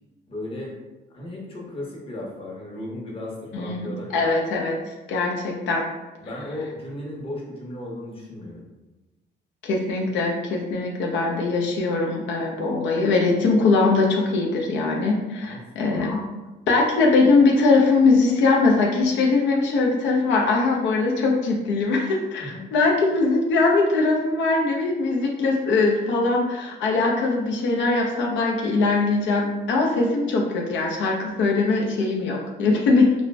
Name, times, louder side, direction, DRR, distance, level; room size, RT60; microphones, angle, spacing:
voice 1, 0.3-0.7 1.1-4.3 6.2-8.7 15.4-16.3 22.4-22.7, left 1 dB, 30° left, -3 dB, 0.7 m, -35 dB
voice 2, 3.5-5.8 9.6-16.3 16.7-33.1, left 3 dB, 85° left, -1 dB, 0.5 m, -21 dB
2.5 x 2.1 x 3.2 m, 1.1 s
cardioid pair, 135°, 19 cm